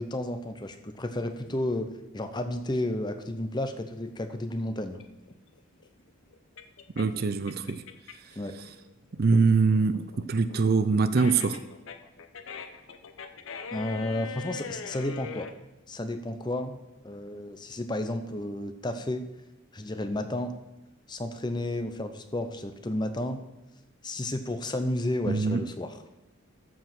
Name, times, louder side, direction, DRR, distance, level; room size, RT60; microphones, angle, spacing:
voice 1, 0.0-5.0 8.4-8.6 13.7-15.5 15.9-19.2 19.7-20.5 21.1-23.4 24.0-25.9, left 1 dB, 20° left, 8 dB, 0.6 m, -32 dB
sound 1, 4.9-8.4 8.8-15.5, left 5 dB, 70° left, 0.7 m, -42 dB
voice 2, 7.0-7.8 8.1-8.7 9.1-11.6 25.3-25.6, right 4 dB, 45° right, 11 dB, 0.5 m, -24 dB
13.5 x 4.8 x 6.0 m, 0.95 s
head